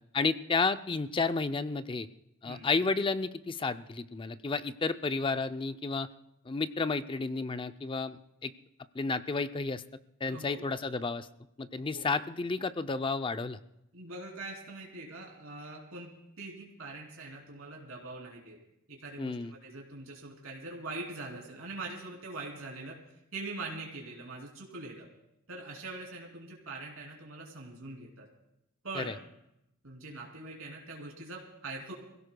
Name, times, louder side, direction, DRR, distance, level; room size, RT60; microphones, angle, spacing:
voice 1, 0.1-2.1 2.4-6.1 6.5-8.5 8.9-9.8 10.2-11.3 11.6-13.6 19.2-19.5 29.0-29.1, left 4 dB, 25° left, 11 dB, 0.4 m, -31 dB
voice 2, 10.2-10.6 11.9-12.1 13.9-18.6 18.9-23.0 23.3-25.1 25.5-28.3 28.8-29.2 29.8-31.9, right 2 dB, 80° right, -2 dB, 3.1 m, -43 dB
26.5 x 16.5 x 2.3 m, 0.83 s
head